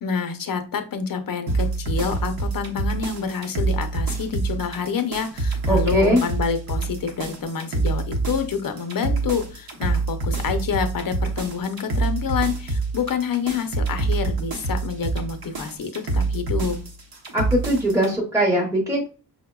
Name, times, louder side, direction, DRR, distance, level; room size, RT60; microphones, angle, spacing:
voice 1, 0.0-16.8, left 6 dB, 60° left, 7 dB, 0.6 m, -27 dB
sound 1, 1.5-18.1, right 3 dB, 65° right, 0.8 m, -26 dB
voice 2, 5.7-6.2 17.3-19.1, equal, 10° right, -1 dB, 0.8 m, -21 dB
5.2 x 2.0 x 2.2 m, 0.35 s
cardioid pair, 60°, 39 cm